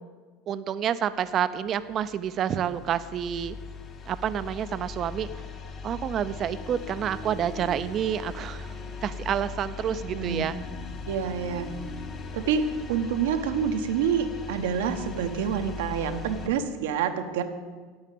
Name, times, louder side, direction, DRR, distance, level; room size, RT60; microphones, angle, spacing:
voice 1, 0.5-3.6 4.1-5.3 5.8-8.7 9.0-10.6, right 9 dB, 40° right, 13 dB, 0.6 m, -28 dB
sound 1, 1.5-16.5, left 4 dB, 35° left, 1.2 m, -39 dB
voice 2, 10.1-10.5 11.0-11.7 12.3-17.4, right 7 dB, 85° right, 7 dB, 1.2 m, -27 dB
8.9 x 8.8 x 8.5 m, 1.5 s
supercardioid pair, 120°, 0 cm